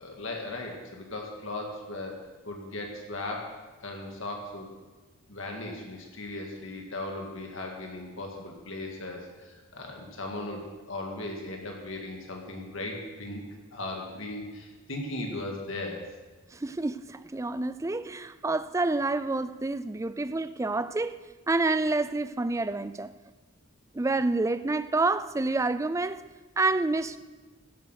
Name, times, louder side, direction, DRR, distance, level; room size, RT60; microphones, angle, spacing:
voice 1, 0.0-3.5 3.8-4.7 5.3-13.4 13.7-16.0, left 2 dB, 65° left, 2.0 m, -37 dB
voice 2, 16.5-23.1 23.9-26.2 26.6-27.2, right 3 dB, 15° right, 0.3 m, -28 dB
15.5 x 8.1 x 6.5 m
head